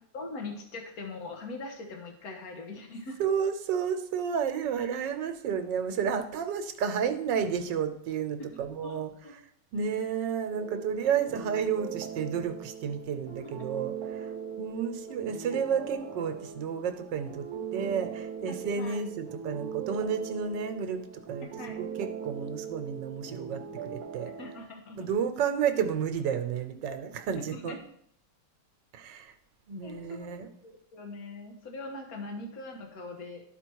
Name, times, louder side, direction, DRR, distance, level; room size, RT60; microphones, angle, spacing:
voice 1, 0.1-3.2 8.4-9.3 13.4-13.5 15.1-15.2 15.5-15.6 18.5-19.0 21.6-21.8 24.4-25.1 27.5-27.8 29.8-30.3 30.6-33.4, left 2 dB, 55° left, 3 dB, 1.7 m, -42 dB
voice 2, 3.2-8.4 8.7-9.1 9.7-14.3 14.6-17.4 17.7-21.5 21.8-24.3 25.0-27.7 28.9-29.3 29.7-30.5, right 7 dB, 85° right, 8 dB, 1.5 m, -31 dB
sound 1, 10.5-24.6, right 7 dB, 65° right, 1.2 m, -40 dB
12.0 x 4.4 x 4.6 m, 0.68 s
omnidirectional pair, 1.9 m